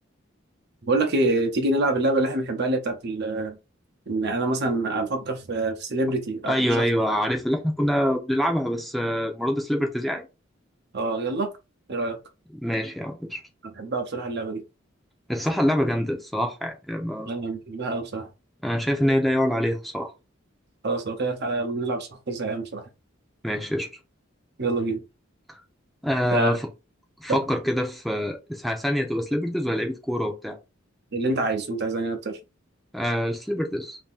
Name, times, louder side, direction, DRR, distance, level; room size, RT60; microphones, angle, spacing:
voice 1, 0.8-3.6 4.1-6.9 10.9-11.5 11.9-12.2 13.6-14.6 17.3-18.3 20.8-22.9 24.6-25.0 26.3-26.6 31.1-32.4, right 2 dB, 60° right, 0.8 m, -26 dB
voice 2, 6.5-10.3 12.5-13.4 15.3-17.3 18.6-20.1 23.4-23.9 26.0-26.6 27.2-30.6 32.9-34.0, equal, ahead, 0.6 m, -25 dB
2.8 x 2.8 x 3.6 m
head